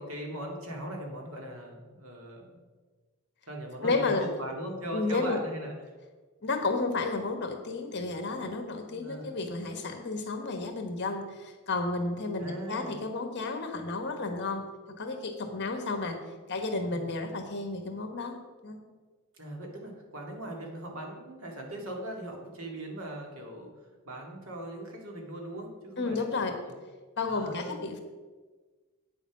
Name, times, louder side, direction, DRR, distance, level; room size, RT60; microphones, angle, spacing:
voice 1, 0.0-2.6 3.5-5.7 8.9-9.3 12.4-13.0 16.9-17.1 19.3-23.7 24.0-26.8 27.3-27.8, right 1 dB, 65° right, 1 dB, 2.3 m, -39 dB
voice 2, 3.8-4.2 4.9-5.4 6.4-14.7 15.0-18.4 18.6-18.8 26.0-26.6 27.2-28.0, left 3 dB, 50° left, 5 dB, 1.4 m, -32 dB
9.2 x 7.1 x 6.1 m, 1.3 s
head